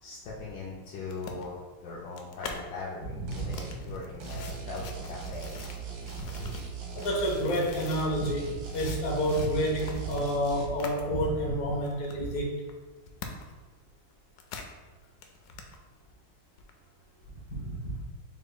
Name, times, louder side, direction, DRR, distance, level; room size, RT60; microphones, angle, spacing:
voice 1, 0.0-5.6, left 3 dB, 70° left, -5 dB, 1.1 m, -40 dB
sound 1, 1.1-2.6 3.2-8.1 8.4-11.0 11.4-11.5 11.8-13.6 13.9-14.8 15.0-15.8 16.6-16.7, left 5 dB, 90° left, 0.9 m, -44 dB
voice 2, 3.1-3.5 3.9-4.0 6.4-6.5 6.9-12.5 17.5-18.0, equal, 55° left, -2 dB, 1.4 m, -29 dB
sound 2, 3.3-3.8 4.2-7.5 7.7-10.7, right 7 dB, 70° right, 1.4 m, -40 dB
5.3 x 4.1 x 2.3 m, 1.3 s
omnidirectional pair, 2.3 m